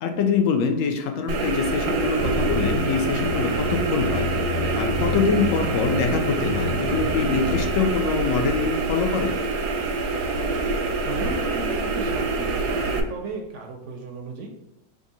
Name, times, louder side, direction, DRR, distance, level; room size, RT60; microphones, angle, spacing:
voice 1, 0.0-4.3 4.8-9.3, left 5 dB, 70° left, 5 dB, 0.9 m, -24 dB
sound 1, 1.3-13.0, right 3 dB, 85° right, 1.1 m, -26 dB
sound 2, 2.2-7.6, left 3 dB, 85° left, 1.4 m, -29 dB
voice 2, 11.0-14.5, right 3 dB, 65° right, 2 dB, 0.7 m, -36 dB
3.6 x 2.5 x 4.0 m, 0.89 s
omnidirectional pair, 1.7 m